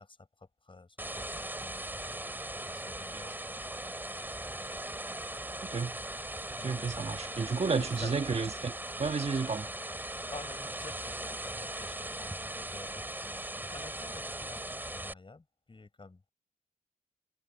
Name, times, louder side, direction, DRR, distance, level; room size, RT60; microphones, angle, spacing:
voice 1, 0.0-3.6 4.1-4.3 6.6-7.2 7.8-8.2 10.0-16.3, left 3 dB, 35° left, 7.1 m, -50 dB
sound 1, 1.0-15.1, right 1 dB, 15° right, 3.9 m, -39 dB
voice 2, 5.7-6.0 6.6-8.7 9.0-9.7, right 4 dB, 45° right, 1.7 m, -31 dB
cardioid pair, 60°, 14 cm